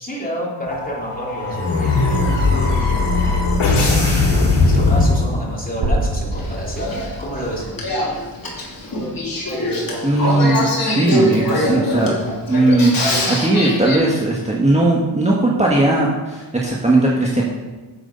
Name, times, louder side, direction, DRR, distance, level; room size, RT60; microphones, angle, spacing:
voice 1, 0.0-2.2 2.5-2.7 3.6-7.8, equal, 15° left, -4 dB, 3.3 m, -29 dB
sound 1, 0.7-5.7, left 3 dB, 75° left, 3.5 m, -18 dB
sound 2, 5.8-9.8, right 1 dB, 70° right, 2.7 m, -27 dB
Male speech man speaking / Female speech woman speaking / Conversation, 6.3-14.0, equal, 45° left, 3.3 m, -23 dB
voice 2, 10.0-12.2 12.5-13.0 13.3-17.4, right 2 dB, 15° right, -3 dB, 1.6 m, -17 dB
8.2 x 7.7 x 5.3 m, 1.3 s
cardioid pair, 75°, 49 cm